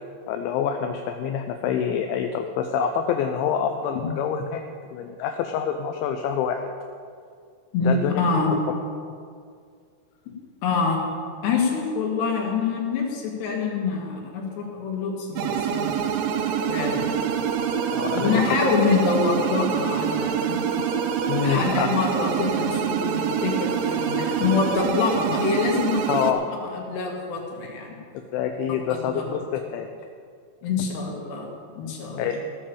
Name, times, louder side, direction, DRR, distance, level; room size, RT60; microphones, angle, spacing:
voice 1, 0.3-4.6 4.9-6.6 7.8-8.2 17.9-18.4 21.3-21.9 26.1-26.4 28.3-29.9 32.2-32.4, left 8 dB, 85° left, 5 dB, 3.0 m, -26 dB
voice 2, 7.7-8.6 10.6-11.0 11.4-15.9 16.7-17.1 18.1-20.6 21.4-26.0 26.6-28.0 28.7-29.2 30.6-31.5 31.7-32.4, left 4 dB, 65° left, -1 dB, 3.9 m, -25 dB
sound 1, 15.4-26.3, right 7 dB, 90° right, 3.4 m, -25 dB
15.0 x 7.2 x 7.0 m, 2.2 s
omnidirectional pair, 5.4 m